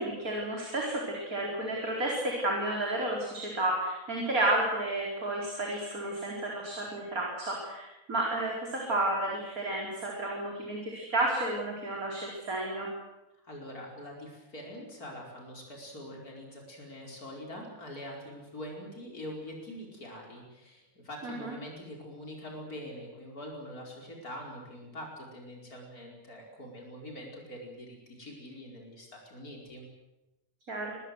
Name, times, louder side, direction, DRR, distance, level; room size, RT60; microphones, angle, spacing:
voice 1, 0.0-12.9 21.2-21.5 30.7-31.0, right 1 dB, 75° right, -1 dB, 4.8 m, -31 dB
voice 2, 13.4-29.9, equal, 90° left, 0 dB, 5.3 m, -44 dB
26.0 x 20.0 x 7.9 m, 0.97 s
omnidirectional pair, 1.5 m